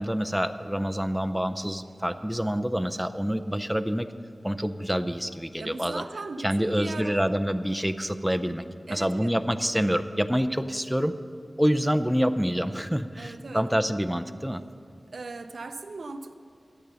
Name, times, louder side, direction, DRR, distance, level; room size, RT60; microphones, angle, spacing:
voice 1, 0.0-4.1 4.4-6.0 6.4-11.1 11.6-14.6, equal, 5° right, 10 dB, 0.4 m, -27 dB
voice 2, 5.6-7.3 8.9-9.4 13.2-13.7 15.1-16.4, right 3 dB, 85° right, 9 dB, 0.5 m, -38 dB
10.5 x 8.9 x 6.8 m, 2.3 s
wide cardioid pair, 85°, 0 cm